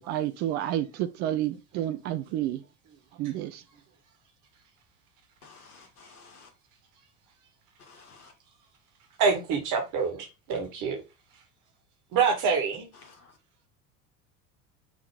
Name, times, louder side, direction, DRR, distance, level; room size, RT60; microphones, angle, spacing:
voice 1, 0.0-2.6 3.2-3.6, right 12 dB, 25° right, 0.3 m, -30 dB
voice 2, 5.4-6.5 7.9-8.3, left 4 dB, 70° left, 2.0 m, -53 dB
voice 3, 9.2-11.0 12.1-12.9, right 5 dB, 40° right, 2.2 m, -26 dB
6.4 x 3.7 x 4.8 m
figure-of-eight pair, 75°, 46 cm